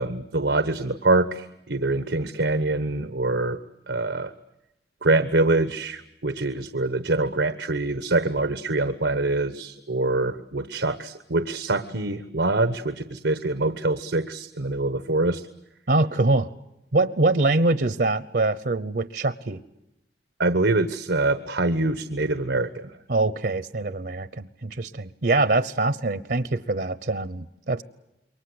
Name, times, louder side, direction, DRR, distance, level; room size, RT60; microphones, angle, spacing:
voice 1, 0.0-3.6 3.9-4.3 5.0-15.4 20.4-23.0, right 2 dB, 90° right, 11 dB, 1.2 m, -24 dB
voice 2, 15.9-16.5 16.9-19.6 23.1-27.8, right 2 dB, 65° right, 15 dB, 0.9 m, -24 dB
28.0 x 23.5 x 8.0 m, 0.87 s
head